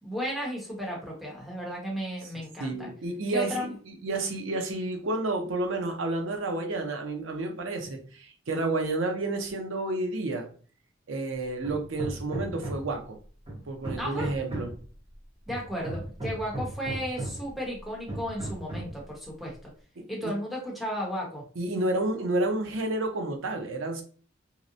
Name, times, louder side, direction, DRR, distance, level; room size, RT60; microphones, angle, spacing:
voice 1, 0.0-2.9 3.3-3.7 14.0-14.3 15.5-19.7 20.1-21.4, equal, ahead, -4 dB, 0.8 m, -34 dB
voice 2, 2.6-10.5 11.1-13.2 13.7-14.7 20.0-20.3 21.6-24.0, right 2 dB, 75° right, 3 dB, 0.6 m, -30 dB
Hammer, 11.6-13.0 13.5-14.9 15.5-17.5 18.1-19.0, right 1 dB, 30° right, 0.8 m, -36 dB
2.8 x 2.0 x 2.5 m, 0.42 s
head